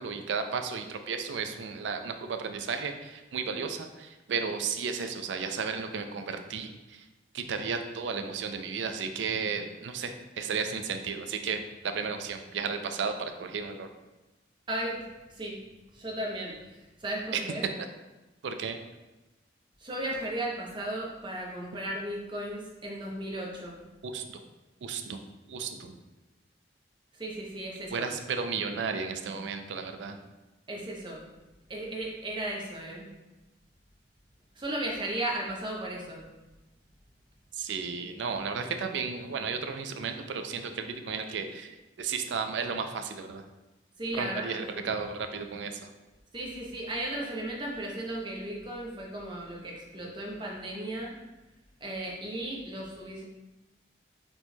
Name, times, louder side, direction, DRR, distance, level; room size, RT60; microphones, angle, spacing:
voice 1, 0.0-7.0 7.3-13.9 17.3-17.4 18.4-18.8 24.0-24.4 24.8-25.2 25.5-25.9 27.9-30.2 37.5-43.4 44.2-45.9, right 5 dB, 85° right, 7 dB, 0.4 m, -34 dB
voice 2, 14.7-15.0 15.3-15.6 15.9-17.7 19.8-23.8 27.1-28.1 30.7-31.2 31.7-33.1 34.6-36.3 44.0-44.9 46.3-51.2 51.8-53.2, right 1 dB, 25° right, -2 dB, 0.7 m, -35 dB
4.4 x 4.1 x 2.2 m, 1.1 s
head